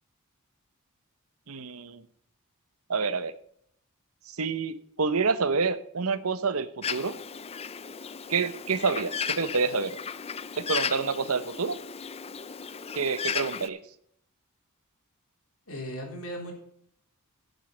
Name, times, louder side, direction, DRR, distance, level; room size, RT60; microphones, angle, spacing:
voice 1, 1.5-2.0 2.9-3.3 4.3-7.2 8.3-10.0 10.7-11.8 12.9-13.8, right 4 dB, 75° right, 14 dB, 0.9 m, -28 dB
Bird, 6.8-13.7, left 7 dB, 25° left, 0.5 m, -35 dB
voice 2, 15.7-16.5, equal, 75° left, 1 dB, 3.9 m, -37 dB
11.5 x 8.2 x 5.2 m, 0.67 s
head